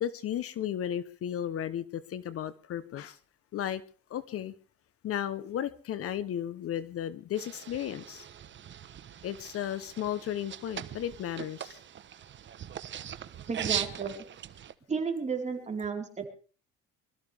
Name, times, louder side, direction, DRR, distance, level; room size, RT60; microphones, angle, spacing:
voice 1, 0.0-3.2 3.5-3.8 4.1-4.5 5.0-8.3 9.2-11.8, left 10 dB, 50° left, 1.0 m, -34 dB
sound 1, 7.4-14.7, right 9 dB, 40° right, 1.1 m, -40 dB
voice 2, 13.5-14.2 14.9-16.3, right 5 dB, 25° right, 4.5 m, -33 dB
24.5 x 14.0 x 3.5 m
cardioid pair, 115°, 29 cm